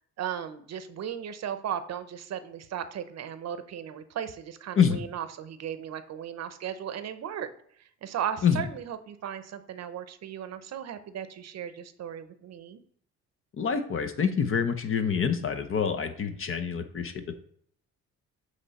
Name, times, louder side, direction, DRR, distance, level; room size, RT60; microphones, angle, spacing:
voice 1, 0.2-7.5 8.0-12.8, right 9 dB, 60° right, 11 dB, 0.7 m, -36 dB
voice 2, 13.6-17.4, left 7 dB, 45° left, 8 dB, 0.8 m, -26 dB
7.7 x 3.2 x 4.1 m, 0.63 s
cardioid pair, 90°, 30 cm